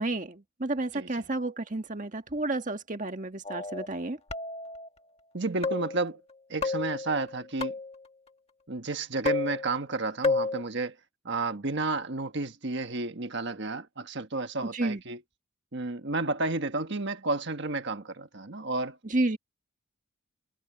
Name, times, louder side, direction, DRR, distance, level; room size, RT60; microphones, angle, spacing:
voice 1, 0.0-4.2 14.6-15.0 19.0-19.4, right 2 dB, 35° right, 1.6 m, -31 dB
sound 1, 3.4-3.9 4.3-4.9 5.6-6.1 6.6-8.1 9.3-9.9 10.2-10.6, left 3 dB, 30° left, 1.6 m, -31 dB
voice 2, 5.3-6.2 6.5-7.7 8.7-10.9 11.2-15.2 15.7-19.0, right 3 dB, 55° right, 1.4 m, -31 dB
head